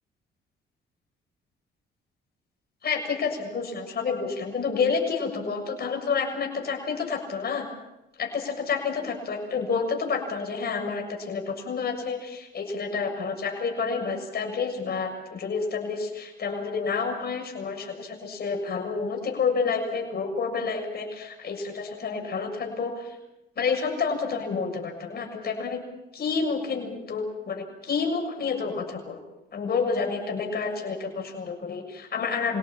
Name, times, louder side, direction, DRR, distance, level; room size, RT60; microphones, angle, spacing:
voice 1, 2.8-7.7 8.2-23.2 23.6-25.8 26.1-29.2 29.5-32.6, left 5 dB, 50° left, 2 dB, 7.0 m, -29 dB
26.5 x 18.0 x 8.9 m, 0.92 s
cardioid pair, 90°, 20 cm